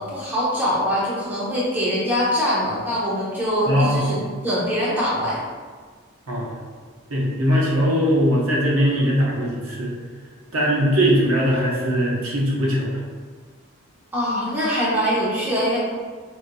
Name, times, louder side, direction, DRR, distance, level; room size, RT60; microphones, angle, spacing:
voice 1, 0.0-5.4 14.1-15.8, equal, 10° right, -8 dB, 0.7 m, -23 dB
voice 2, 3.7-4.2 6.3-6.5 7.1-9.9 10.5-12.9, equal, 90° right, -4 dB, 0.8 m, -20 dB
4.6 x 2.6 x 2.2 m, 1.6 s
head